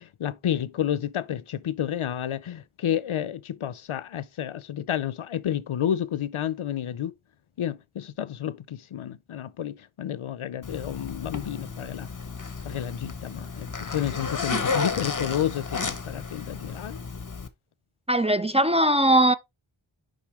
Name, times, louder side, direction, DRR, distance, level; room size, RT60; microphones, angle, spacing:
voice 1, 0.0-7.1 7.6-12.1 12.6-17.0, left 10 dB, 80° left, 0.6 m, -30 dB
Zipper (clothing), 10.6-17.5, left 4 dB, 40° left, 0.9 m, -33 dB
voice 2, 18.1-19.3, right 1 dB, 15° right, 0.4 m, -20 dB
6.9 x 5.4 x 3.1 m
wide cardioid pair, 45°, 49 cm